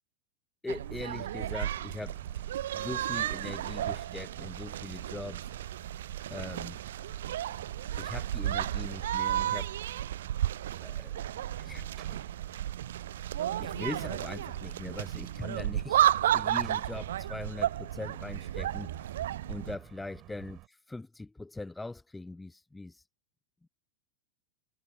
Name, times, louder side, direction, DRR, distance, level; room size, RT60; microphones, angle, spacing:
voice 1, 0.6-2.4 2.7-5.5 6.3-6.8 8.0-9.8 10.8-12.3 13.4-19.0 19.5-23.0 23.6-23.7, left 2 dB, 5° left, 0.6 m, -41 dB
sound 1, 0.7-19.8, right 12 dB, 60° right, 0.3 m, -33 dB
sound 2, 0.8-20.7, right 18 dB, 35° right, 7.3 m, -50 dB
figure-of-eight pair, 90°, 0 cm